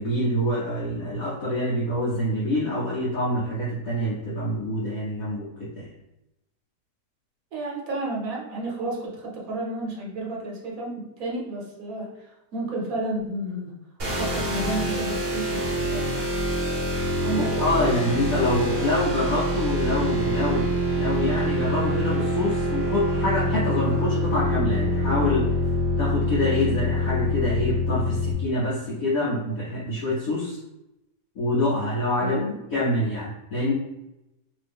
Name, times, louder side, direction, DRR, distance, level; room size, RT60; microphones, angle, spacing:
voice 1, 0.0-5.9 17.4-25.5 26.0-30.6 31.3-32.4 32.7-33.7, left 1 dB, 60° left, -8 dB, 1.2 m, -26 dB
voice 2, 7.5-13.8 14.2-16.3 17.2-17.9 32.2-32.5, right 1 dB, 60° right, -2 dB, 1.2 m, -32 dB
sound 1, 14.0-28.3, equal, 45° right, 0.9 m, -25 dB
2.9 x 2.7 x 3.4 m, 0.90 s
omnidirectional pair, 1.8 m